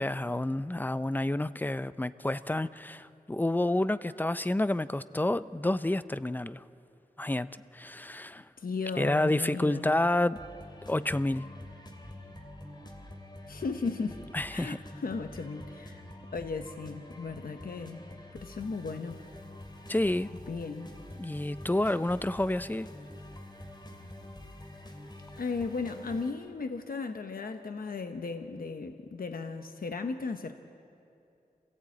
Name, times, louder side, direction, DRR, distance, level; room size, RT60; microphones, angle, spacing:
voice 1, 0.0-6.6 7.2-8.5 9.0-10.4 10.9-11.4 14.3-14.8 19.9-20.3 21.2-22.9, left 1 dB, 10° left, 15 dB, 0.5 m, -29 dB
voice 2, 8.6-10.0 13.5-14.2 14.5-16.0 16.3-18.0 18.3-19.2 20.3-20.9 25.4-30.5, left 4 dB, 75° left, 6 dB, 1.0 m, -36 dB
sound 1, 10.3-26.3, left 1 dB, 30° left, 2.7 m, -47 dB
27.0 x 16.5 x 8.6 m, 2.6 s
wide cardioid pair, 100°, 15 cm